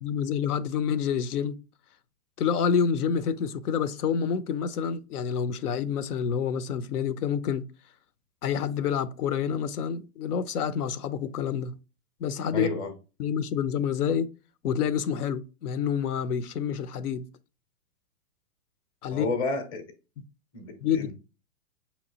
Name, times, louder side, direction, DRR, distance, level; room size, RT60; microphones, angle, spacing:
voice 1, 0.0-1.6 2.4-7.6 8.4-11.8 12.2-12.7 13.2-14.3 14.6-17.3 19.0-19.3 20.8-21.1, left 7 dB, 80° left, 0.7 m, -28 dB
voice 2, 12.5-12.9 19.1-19.8 20.5-21.1, left 3 dB, 10° left, 0.6 m, -30 dB
5.7 x 2.9 x 2.8 m
hypercardioid pair, 135°, 45 cm